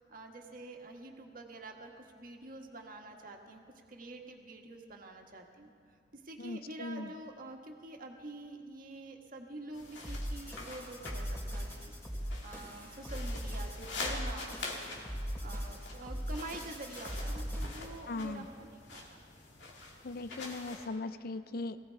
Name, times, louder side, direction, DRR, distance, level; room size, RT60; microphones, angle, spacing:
voice 1, 0.0-3.6 3.9-5.7 6.1-15.0 15.4-19.2, right 2 dB, 50° right, 2 dB, 1.6 m, -47 dB
voice 2, 6.4-7.1 18.1-18.5 20.0-21.8, left 2 dB, 55° left, 13 dB, 0.5 m, -39 dB
sound 1, 9.7-20.8, left 3 dB, 80° left, 2.3 m, -45 dB
sound 2, 10.0-18.0, equal, 10° left, 2.7 m, -39 dB
19.0 x 16.5 x 4.6 m, 2.3 s
head